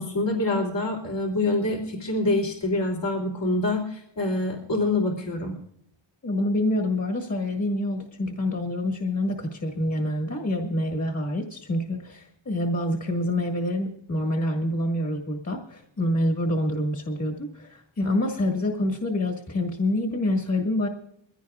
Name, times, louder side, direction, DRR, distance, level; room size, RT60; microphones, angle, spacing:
voice 1, 0.0-5.6, left 2 dB, 60° left, -1 dB, 3.2 m, -26 dB
voice 2, 6.2-20.9, left 1 dB, 35° left, 3 dB, 2.0 m, -27 dB
23.0 x 16.0 x 2.4 m, 0.72 s
wide cardioid pair, 125°, 48 cm